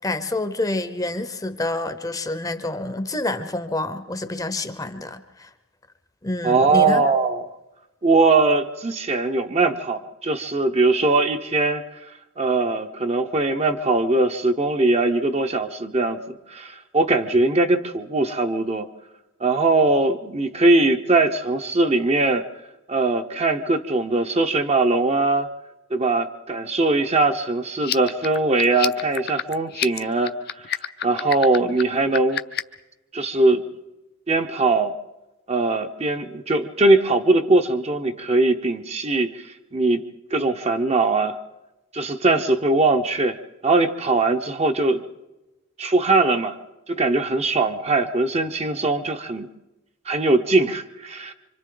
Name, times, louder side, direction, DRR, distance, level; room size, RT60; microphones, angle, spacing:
voice 1, 0.0-5.5 6.2-7.0, left 2 dB, 15° left, 10 dB, 0.8 m, -28 dB
voice 2, 6.4-7.4 8.0-11.8 12.4-18.9 19.4-22.4 22.9-25.5 25.9-30.7 31.0-32.4 33.1-33.6 34.3-34.9 35.5-40.0 40.3-41.4 41.9-43.4 43.6-45.0 45.8-46.6 46.9-49.5 50.1-51.3, right 2 dB, 30° right, 6 dB, 0.8 m, -21 dB
sound 1, 27.8-32.8, left 10 dB, 45° left, 0.7 m, -29 dB
27.0 x 25.0 x 3.9 m, 1.0 s
head